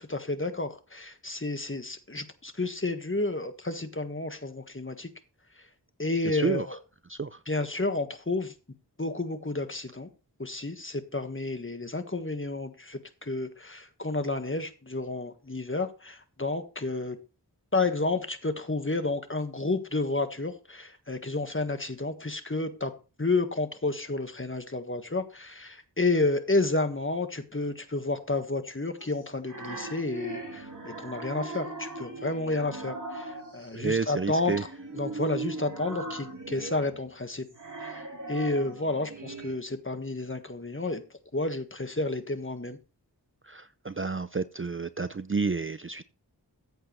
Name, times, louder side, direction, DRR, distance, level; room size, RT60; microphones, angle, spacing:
voice 1, 0.0-5.1 6.0-6.8 7.5-8.5 9.0-10.1 10.4-17.2 17.7-22.9 23.2-34.7 34.9-37.4 37.8-41.0 41.3-42.8, left 2 dB, 30° left, 8 dB, 1.5 m, -31 dB
voice 2, 6.2-6.7 7.1-7.4 33.7-34.6 43.4-46.0, right 4 dB, 30° right, 13 dB, 0.5 m, -30 dB
sound 1, 29.0-33.8 34.3-39.5, right 2 dB, 50° right, 3.2 m, -39 dB
14.5 x 8.0 x 3.1 m, 0.32 s
wide cardioid pair, 45°, 40 cm